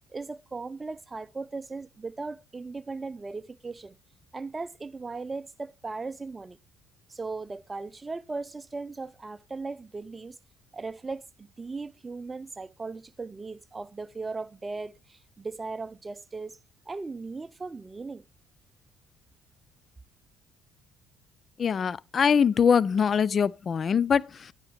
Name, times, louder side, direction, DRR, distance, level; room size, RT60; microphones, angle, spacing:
voice 1, 0.1-4.0 4.3-6.6 7.1-10.4 10.7-16.6 16.9-18.2, right 3 dB, 25° right, 0.6 m, -37 dB
voice 2, 21.6-24.5, left 7 dB, 45° left, 0.4 m, -23 dB
9.8 x 9.5 x 3.3 m
hypercardioid pair, 55°, 0 cm